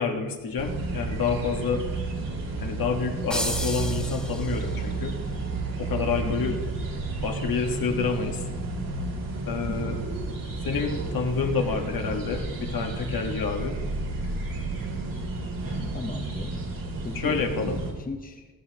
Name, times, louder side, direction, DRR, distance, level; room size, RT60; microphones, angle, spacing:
voice 1, 0.0-1.8 2.6-5.1 5.8-6.6 7.2-8.4 9.5-9.9 10.6-13.8 17.1-17.8, left 5 dB, 75° left, 3 dB, 1.5 m, -28 dB
sound 1, 0.6-17.9, right 3 dB, 65° right, 2.9 m, -32 dB
sound 2, 3.3-4.9, equal, ahead, 1.9 m, -32 dB
voice 2, 6.2-6.6 9.7-10.0 15.9-16.6 17.0-17.4 18.0-18.5, left 4 dB, 25° left, 4 dB, 0.9 m, -37 dB
15.5 x 14.0 x 2.9 m, 1.3 s
wide cardioid pair, 145°, 36 cm